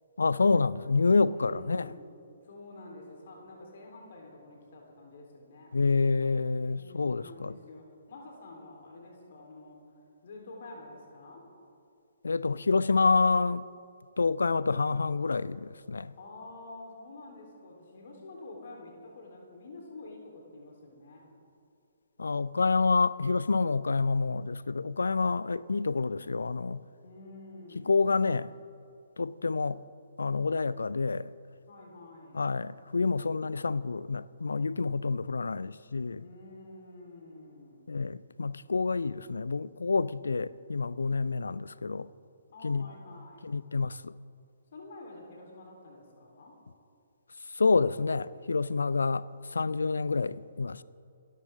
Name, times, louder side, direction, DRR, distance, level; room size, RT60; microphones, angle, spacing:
voice 1, 0.2-1.9 5.7-7.5 12.2-13.6 14.2-16.1 22.2-26.8 27.7-28.5 29.2-29.8 30.2-31.3 32.3-36.2 37.9-42.1 42.6-42.9 43.4-44.1 47.5-49.2 49.5-50.8, left 4 dB, 65° left, 0.4 m, -28 dB
voice 2, 1.2-2.0 2.4-5.7 6.7-9.8 10.2-11.5 16.2-21.3 27.0-28.0 31.7-32.5 36.2-37.9 42.5-43.5 44.7-46.6, left 2 dB, 50° left, 3.7 m, -48 dB
27.0 x 13.5 x 3.7 m
figure-of-eight pair, 130°, 0 cm